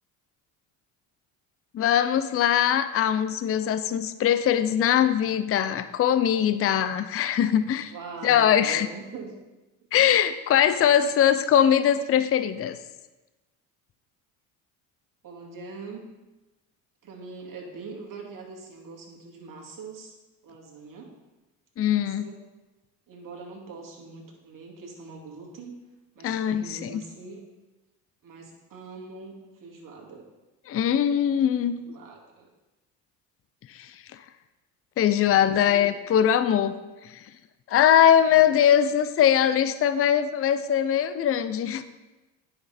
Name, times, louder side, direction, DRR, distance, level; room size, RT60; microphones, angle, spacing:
voice 1, 1.7-7.9 8.2-8.9 9.9-12.8 21.8-22.3 26.2-27.0 30.7-31.7 33.7-33.9 35.0-36.7 37.0-37.2 37.7-41.8, left 9 dB, 30° left, 12 dB, 0.5 m, -21 dB
voice 2, 7.9-9.3 15.2-16.1 17.0-20.1 20.4-21.1 21.8-22.4 23.1-25.7 26.1-27.4 28.2-30.2 31.7-32.5 35.4-35.9 38.3-38.4, right 4 dB, 45° right, -2 dB, 2.5 m, -42 dB
9.6 x 6.0 x 4.2 m, 1.1 s
supercardioid pair, 80°, 44 cm